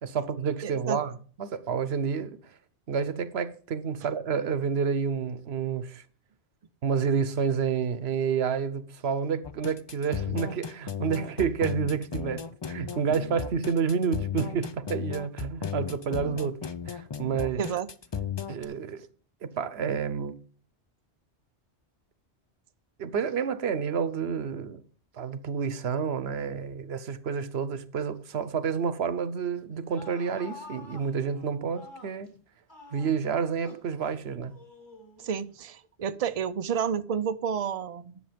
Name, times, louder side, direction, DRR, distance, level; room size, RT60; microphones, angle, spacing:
voice 1, 0.0-2.5 2.9-6.0 6.8-16.6 16.9-17.6 18.5-19.1 19.4-20.4 23.0-24.8 25.1-32.3 32.9-34.6, right 6 dB, 70° right, 1.1 m, -29 dB
voice 2, 0.6-1.0 17.6-17.9 35.2-38.2, right 7 dB, 45° right, 0.5 m, -30 dB
sound 1, 9.4-18.7, left 7 dB, 40° left, 0.4 m, -35 dB
sound 2, 29.7-32.3 32.7-33.9 34.5-35.5, left 2 dB, 20° left, 2.5 m, -48 dB
10.5 x 6.9 x 5.1 m
omnidirectional pair, 1.1 m